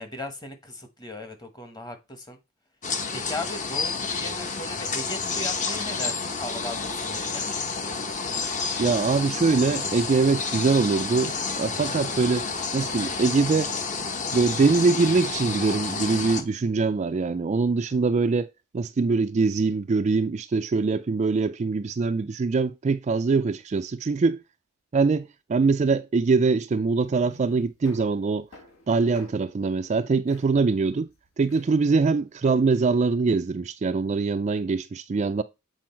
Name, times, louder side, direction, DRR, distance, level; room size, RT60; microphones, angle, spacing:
voice 1, 0.0-2.4 3.1-7.4, left 2 dB, 20° left, 1.2 m, -37 dB
sound 1, 2.8-16.4, left 4 dB, 35° left, 1.0 m, -30 dB
voice 2, 8.8-13.7 14.3-24.4 24.9-28.5 28.9-31.1 31.4-35.4, right 4 dB, 35° right, 0.3 m, -23 dB
sound 2, 26.7-32.6, left 3 dB, 70° left, 1.7 m, -52 dB
7.7 x 4.6 x 4.4 m
head